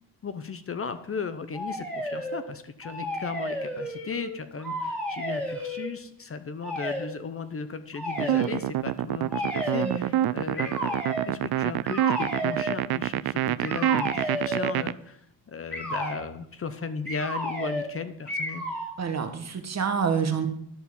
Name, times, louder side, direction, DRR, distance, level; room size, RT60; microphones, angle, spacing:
voice 1, 0.2-15.2 15.5-18.7, left 5 dB, 35° left, 11 dB, 0.7 m, -36 dB
sound 1, 1.5-2.4 2.8-4.3 4.6-5.9 6.6-7.1 7.9-8.6 9.3-10.0 10.5-11.3 11.8-12.8 13.6-14.8 15.7-16.2 17.0-17.9 18.3-18.9, equal, 5° left, 2.5 m, -32 dB
sound 2, 8.2-14.9, right 13 dB, 65° right, 0.5 m, -26 dB
voice 2, 9.8-10.1 19.0-20.5, right 6 dB, 40° right, 7 dB, 1.3 m, -27 dB
11.5 x 4.5 x 6.9 m, 0.70 s
cardioid pair, 105°, 41 cm